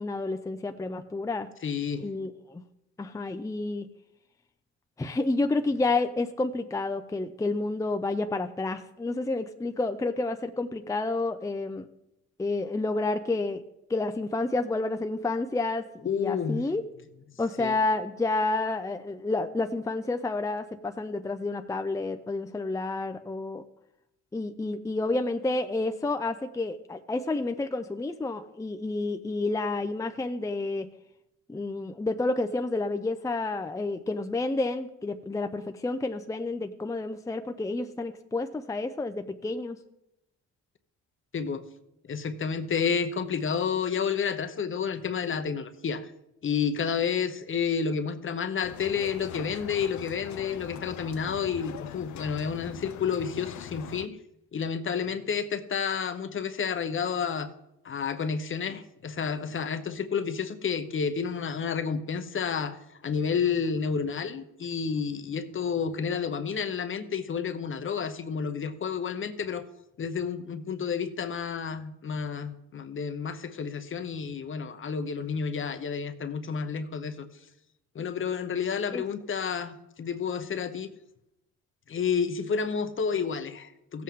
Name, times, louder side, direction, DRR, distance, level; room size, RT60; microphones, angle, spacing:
voice 1, 0.0-1.5 2.0-2.6 3.0-3.9 5.0-11.9 12.4-13.6 13.9-16.8 17.4-23.6 24.3-30.9 31.5-39.8 78.9-79.0, left 2 dB, 10° left, 7 dB, 0.5 m, -30 dB
voice 2, 1.6-2.1 16.0-16.6 17.6-17.7 41.3-41.7 42.1-46.1 46.4-54.2 54.5-57.5 57.8-69.7 70.0-77.3 77.9-80.9 81.9-84.0, left 6 dB, 40° left, 10 dB, 0.9 m, -30 dB
sound 1, 48.6-54.1, left 11 dB, 70° left, 0.6 m, -42 dB
15.5 x 7.7 x 3.6 m, 0.85 s
cardioid pair, 90°, 30 cm